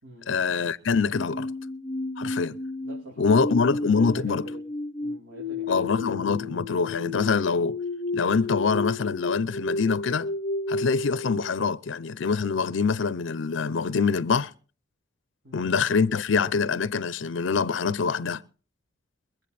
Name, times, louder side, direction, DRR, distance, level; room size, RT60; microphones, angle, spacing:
voice 1, 0.3-1.5 2.2-2.6 3.2-4.4 5.7-7.8 8.1-10.3 10.7-14.5 15.5-18.4, left 5 dB, 80° left, 0.5 m, -25 dB
sound 1, 1.1-11.5, left 2 dB, 40° left, 0.8 m, -32 dB
voice 2, 2.8-3.6 3.9-4.7 5.0-5.8 15.4-15.7, right 3 dB, 85° right, 4.2 m, -45 dB
23.5 x 7.9 x 4.2 m
head